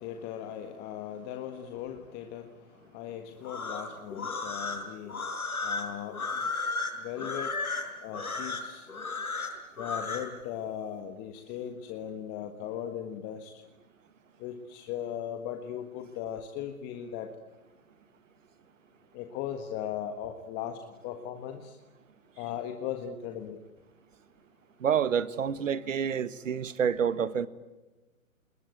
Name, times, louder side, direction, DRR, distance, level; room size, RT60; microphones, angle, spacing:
voice 1, 0.0-2.5 2.9-5.2 5.6-6.2 7.0-7.5 8.0-8.9 9.8-13.5 14.4-17.3 19.1-20.8 21.0-21.8 22.4-23.6, left 10 dB, 25° left, 1.6 m, -38 dB
sound 1, 3.4-10.3, left 3 dB, 80° left, 5.9 m, -34 dB
voice 2, 24.8-27.5, right 7 dB, 60° right, 1.6 m, -28 dB
30.0 x 21.0 x 9.3 m
figure-of-eight pair, 130°, 43 cm